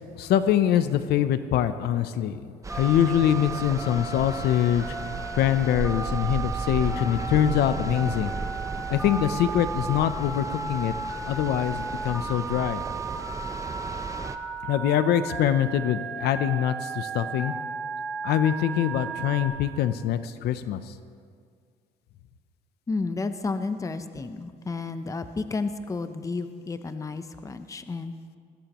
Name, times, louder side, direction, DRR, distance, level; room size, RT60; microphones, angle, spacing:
voice 1, 0.2-4.8 5.3-8.3 8.9-10.9 11.3-12.8 14.7-17.5 18.2-20.8, left 10 dB, 75° left, 12 dB, 0.7 m, -24 dB
sound 1, 2.6-14.4, right 4 dB, 20° right, 0.7 m, -35 dB
Telephone, 2.7-19.4, right 4 dB, 5° right, 3.5 m, -35 dB
voice 2, 22.9-28.1, left 3 dB, 20° left, 10 dB, 0.7 m, -31 dB
20.0 x 16.5 x 3.0 m, 2.1 s
cardioid pair, 110°, 17 cm